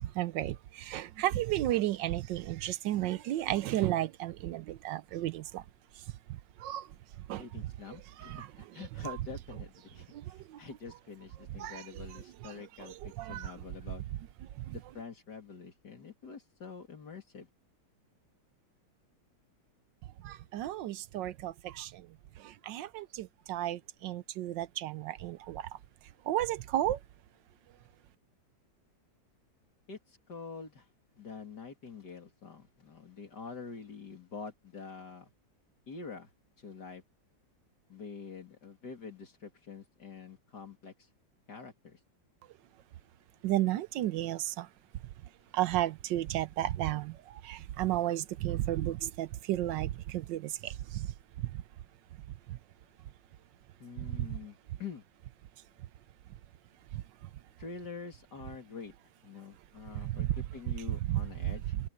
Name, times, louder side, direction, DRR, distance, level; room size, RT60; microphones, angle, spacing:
voice 1, 0.2-0.5 0.9-5.4 6.6-6.8 7.3-7.4 8.3-8.5 9.0-9.1 11.6-11.8 13.2-13.5 20.5-21.9 22.7-23.8 24.0-25.6 26.3-27.0 43.4-44.4 45.5-47.1 47.5-49.9 50.3-50.4 60.2-60.3 61.1-61.2, right 14 dB, 80° right, 1.3 m, -32 dB
voice 2, 7.4-14.0 14.7-17.5 29.9-30.9 31.2-35.3 35.9-36.3 36.6-37.0 37.9-40.9 41.5-42.0 53.8-55.0 57.6-58.9 59.2-61.7, left 5 dB, 60° left, 3.6 m, -46 dB
omnidirectional pair, 2.0 m